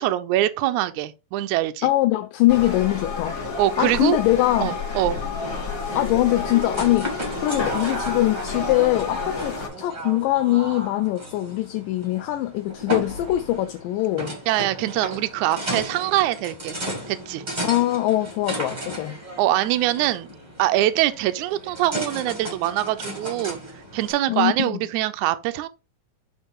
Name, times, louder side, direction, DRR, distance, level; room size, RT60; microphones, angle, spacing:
voice 1, 0.0-1.9 3.6-4.2 4.6-5.2 14.5-16.8 17.1-17.4 19.4-20.3 20.6-23.6 23.9-25.7, right 14 dB, 75° right, 1.9 m, -23 dB
voice 2, 1.8-3.4 3.8-4.8 5.9-14.4 17.6-19.2 24.3-24.9, left 15 dB, 85° left, 2.2 m, -22 dB
sound 1, 2.5-9.7, left 4 dB, 25° left, 1.7 m, -30 dB
sound 2, 5.3-24.1, right 1 dB, 15° right, 1.7 m, -35 dB
8.0 x 4.5 x 3.6 m
omnidirectional pair, 3.9 m